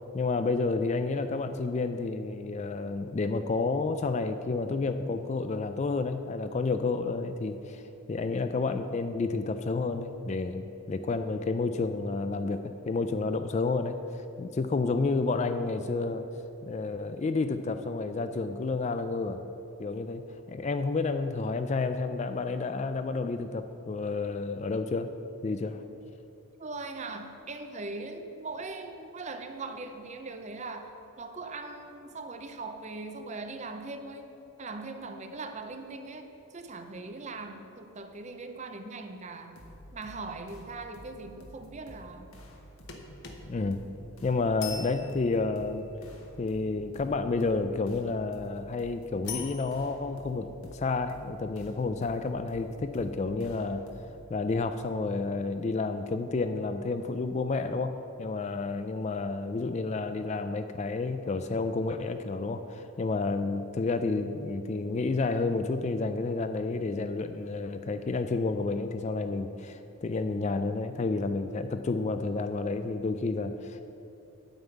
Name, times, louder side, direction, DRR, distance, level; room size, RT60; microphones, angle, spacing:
voice 1, 0.1-7.8 8.1-16.2 16.6-19.4 19.8-20.2 20.5-25.1 25.4-25.8 43.5-43.8 44.2-45.9 46.4-53.8 54.3-57.9 58.2-73.8, left 3 dB, 30° left, 9 dB, 0.3 m, -30 dB
voice 2, 26.6-34.3 34.6-39.6 39.9-42.3, right 3 dB, 30° right, 7 dB, 0.6 m, -40 dB
sound 1, 39.6-54.3, equal, 70° left, 1.3 m, -51 dB
sound 2, 42.9-45.8 49.3-49.9, left 6 dB, 50° left, 1.0 m, -42 dB
9.1 x 5.5 x 8.0 m, 2.8 s
head